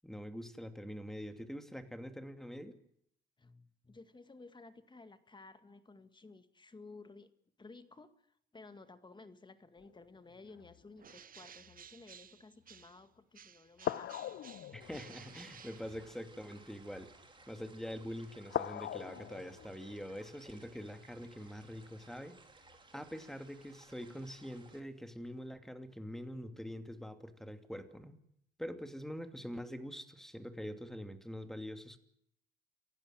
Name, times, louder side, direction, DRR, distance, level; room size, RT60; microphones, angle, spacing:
voice 1, 0.0-2.8 14.7-17.1 17.5-22.4 22.9-28.2 28.6-32.0, equal, ahead, 8 dB, 2.7 m, -44 dB
voice 2, 3.4-7.3 7.6-8.1 8.5-14.1, left 3 dB, 25° left, 10 dB, 2.0 m, -55 dB
sound 1, 9.8-11.0 11.6-11.9 12.7-12.8 13.8-17.4 17.9-18.1 18.5-22.0 22.6-22.8, left 12 dB, 65° left, 0.8 m, -43 dB
Bird, 11.0-13.1 13.3-16.4, right 8 dB, 45° right, 0.8 m, -56 dB
sound 2, 14.8-24.8, right 3 dB, 25° right, 3.7 m, -60 dB
28.0 x 15.5 x 7.7 m, 0.72 s
cardioid pair, 90°, 20 cm